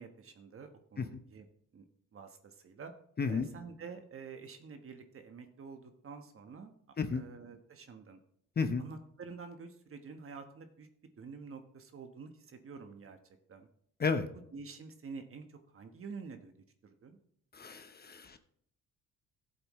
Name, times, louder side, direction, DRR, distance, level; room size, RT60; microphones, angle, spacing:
voice 1, 0.0-1.4 1.7-1.8 2.1-2.9 3.3-6.7 7.1-8.2 8.8-10.9 11.2-13.2 13.5-13.7 14.5-16.5 16.8-17.2, right 5 dB, 45° right, 6 dB, 1.3 m, -48 dB
voice 2, 3.2-3.5 7.0-7.2 8.6-8.8 14.0-14.3 17.5-18.4, left 4 dB, 30° left, 8 dB, 0.9 m, -32 dB
15.0 x 8.0 x 3.2 m, 0.67 s
cardioid pair, 90°, 30 cm